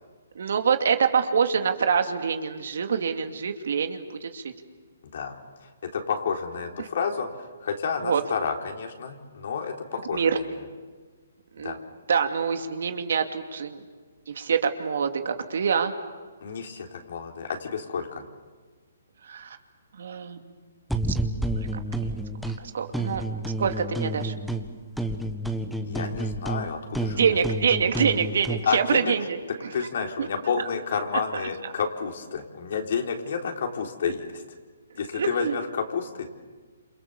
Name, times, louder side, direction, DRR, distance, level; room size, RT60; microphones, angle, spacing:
voice 1, 0.4-4.4 6.8-6.9 8.0-8.2 10.1-10.4 11.6-11.8 12.1-13.8 14.4-15.9 19.3-19.6 20.0-20.5 22.6-23.2 23.6-24.3 27.1-29.4 30.2-30.3 31.3-31.4 35.1-35.6, right 6 dB, 65° right, 6 dB, 2.5 m, -25 dB
voice 2, 5.9-7.3 7.6-10.4 11.6-11.8 16.4-18.2 25.8-27.2 28.6-29.1 29.7-34.4 35.0-36.3, left 6 dB, 60° left, 2 dB, 4.2 m, -30 dB
sound 1, 20.9-22.6 22.9-24.7 25.0-28.7, right 1 dB, ahead, 1.5 m, -30 dB
28.0 x 27.5 x 7.2 m, 1.4 s
hypercardioid pair, 145°, 0 cm